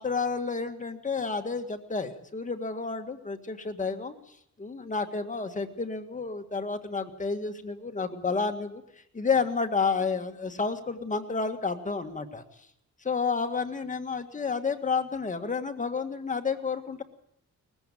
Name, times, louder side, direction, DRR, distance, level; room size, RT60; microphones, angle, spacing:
voice 1, 0.0-4.1 4.6-8.8 9.1-12.4 13.0-17.0, left 4 dB, 25° left, 6 dB, 1.9 m, -30 dB
19.5 x 15.0 x 9.0 m, 0.75 s
cardioid pair, 115°, 29 cm